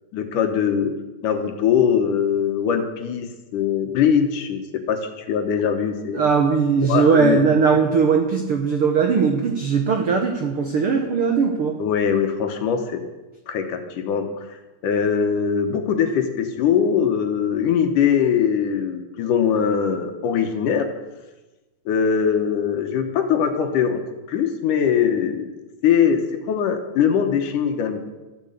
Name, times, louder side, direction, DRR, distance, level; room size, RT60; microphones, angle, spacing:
voice 1, 0.1-0.9 1.2-6.2 6.9-7.4 11.8-13.0 13.5-14.5 14.8-20.9 21.9-24.0 24.3-25.5 25.8-28.0, left 7 dB, 70° left, 6 dB, 2.4 m, -21 dB
voice 2, 6.1-11.8, right 5 dB, 85° right, 4 dB, 1.2 m, -19 dB
13.0 x 9.7 x 8.0 m, 1.1 s
omnidirectional pair, 4.2 m